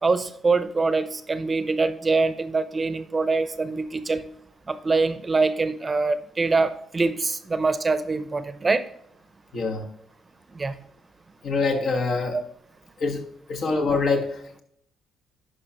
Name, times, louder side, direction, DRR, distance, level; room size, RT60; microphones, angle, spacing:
voice 1, 0.0-4.3 4.7-8.8 10.5-10.8 12.3-12.4, right 3 dB, 30° right, 12 dB, 0.6 m, -24 dB
voice 2, 9.5-9.9 11.4-12.4 13.0-14.6, left 3 dB, 70° left, 1 dB, 1.4 m, -25 dB
11.0 x 5.0 x 3.0 m, 0.71 s
cardioid pair, 90°, 0 cm